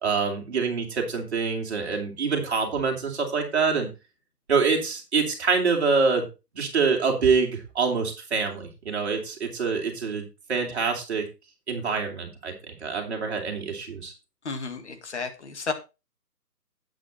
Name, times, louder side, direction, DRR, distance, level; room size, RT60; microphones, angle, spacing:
voice 1, 0.0-3.9 4.5-6.2 6.5-10.2 10.5-11.2 11.7-12.5 12.8-14.1, right 5 dB, 40° right, 2 dB, 3.0 m, -25 dB
voice 2, 14.5-15.7, left 4 dB, 45° left, 7 dB, 1.9 m, -32 dB
8.7 x 8.1 x 4.3 m, 0.28 s
figure-of-eight pair, 155°, 48 cm